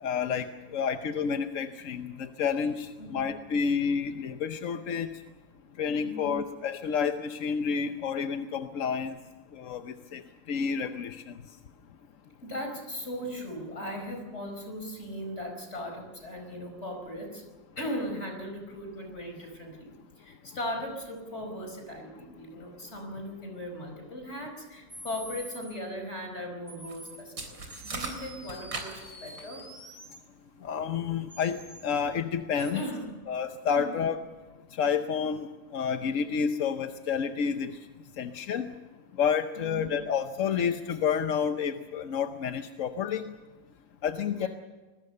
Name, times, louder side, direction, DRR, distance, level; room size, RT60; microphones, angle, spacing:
voice 1, 0.0-5.1 5.8-9.1 9.6-10.2 10.5-11.3 30.6-31.6 31.8-32.8 33.3-34.2 34.8-37.7 38.2-38.7 39.2-43.2 44.0-44.5, left 7 dB, 55° left, 8 dB, 1.1 m, -29 dB
voice 2, 6.0-6.4 12.4-17.4 17.8-29.7 32.6-33.2 33.7-34.0 35.9-36.1 39.6-39.9 44.3-44.5, equal, 35° left, 4 dB, 5.2 m, -38 dB
sound 1, 24.9-25.7 26.7-27.2 27.7-30.2 31.3-31.9 32.6-32.9, equal, 15° right, 2.9 m, -47 dB
sound 2, 26.9-27.0 27.4-29.6, right 3 dB, 90° right, 4.5 m, -38 dB
27.5 x 20.5 x 6.8 m, 1.3 s
omnidirectional pair, 1.9 m